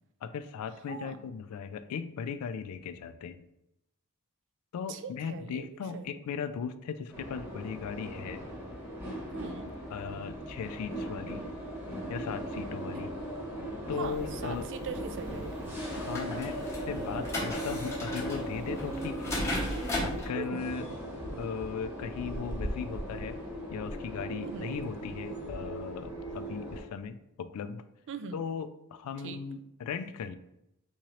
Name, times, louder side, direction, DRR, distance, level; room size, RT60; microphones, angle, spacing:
voice 1, 0.2-3.5 4.7-8.5 9.9-11.4 12.1-13.1 13.9-14.7 15.9-19.4 20.0-20.9 21.4-23.4 23.7-27.8 28.3-30.4, left 6 dB, 85° left, 12 dB, 0.3 m, -38 dB
voice 2, 0.9-1.2 4.9-5.7 5.9-6.2 9.3-9.7 12.9-13.0 14.0-15.7 20.3-20.6 24.4-24.7 28.1-28.4 29.2-29.4, right 5 dB, 60° right, 10 dB, 0.3 m, -41 dB
sound 1, 7.1-26.8, right 1 dB, 10° right, 1.0 m, -38 dB
sound 2, 14.0-20.3, left 1 dB, 15° left, 0.9 m, -37 dB
3.6 x 2.9 x 3.1 m, 0.84 s
head